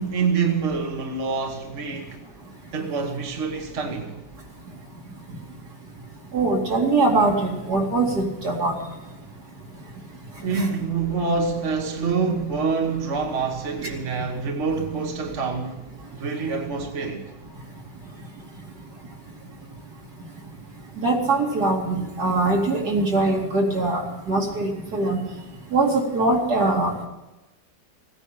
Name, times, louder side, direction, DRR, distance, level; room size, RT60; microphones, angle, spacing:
voice 1, 0.0-2.2 2.7-4.1 10.4-15.8 16.2-17.2, right 5 dB, 45° right, 1.6 m, -26 dB
voice 2, 6.3-8.8 10.5-10.7 21.0-24.0 24.3-25.2 25.7-26.9, right 2 dB, 70° right, 3.2 m, -22 dB
16.5 x 9.9 x 7.5 m
omnidirectional pair, 1.8 m